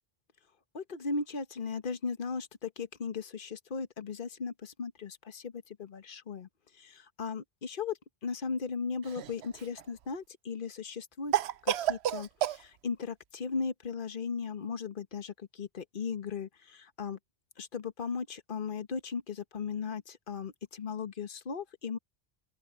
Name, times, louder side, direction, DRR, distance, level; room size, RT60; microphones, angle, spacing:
voice 1, 0.7-6.5 6.8-11.3 11.6-17.2 17.6-22.0, left 5 dB, 55° left, 1.4 m, -37 dB
Cough, 9.0-9.8 11.3-12.6, right 11 dB, 80° right, 0.9 m, -30 dB
open air
omnidirectional pair, 1.1 m